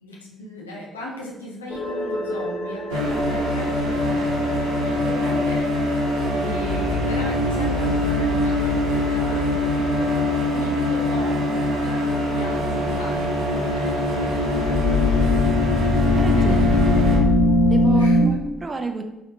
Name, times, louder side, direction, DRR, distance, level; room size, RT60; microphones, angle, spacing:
voice 1, 0.0-4.3 4.8-5.7 6.2-15.6 15.9-17.4 17.9-18.2, left 1 dB, 85° left, -2 dB, 0.7 m, -37 dB
sound 1, 1.7-18.3, left 2 dB, 45° left, 0.9 m, -24 dB
sound 2, 2.9-17.2, left 1 dB, 70° right, 1.0 m, -24 dB
voice 2, 16.1-16.7 17.7-19.0, right 3 dB, 30° right, 5 dB, 0.6 m, -30 dB
4.8 x 3.4 x 2.7 m, 0.95 s
figure-of-eight pair, 45°, 0 cm